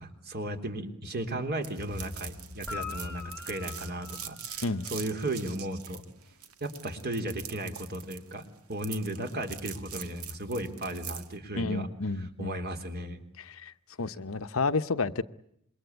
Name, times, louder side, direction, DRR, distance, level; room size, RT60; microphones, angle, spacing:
voice 1, 0.0-6.0 6.6-11.9 12.2-13.2, right 1 dB, 45° right, 3.6 m, -35 dB
sound 1, 1.6-11.3, right 9 dB, 85° right, 2.1 m, -43 dB
Guitar, 2.7-5.2 9.0-9.1, left 5 dB, 10° left, 1.6 m, -43 dB
voice 2, 11.5-12.6 13.4-15.2, left 3 dB, 65° left, 0.9 m, -31 dB
27.0 x 23.0 x 8.2 m
head